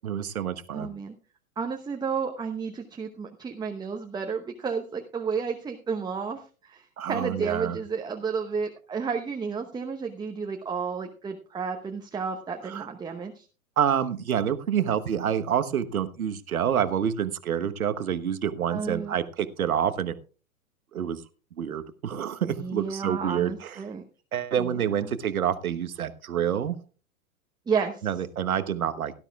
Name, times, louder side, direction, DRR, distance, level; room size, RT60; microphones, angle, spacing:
voice 1, 0.0-0.9 7.0-7.8 12.6-12.9 13.8-20.1 20.9-21.2 21.6-23.8 24.3-26.8 28.0-29.1, right 9 dB, 75° right, 11 dB, 1.2 m, -27 dB
voice 2, 0.7-1.1 1.6-13.5 18.7-19.1 22.6-24.0 24.6-25.1 27.7-28.1, right 5 dB, 10° right, 3 dB, 1.0 m, -32 dB
18.0 x 12.0 x 2.3 m, 0.36 s
figure-of-eight pair, 105°, 43 cm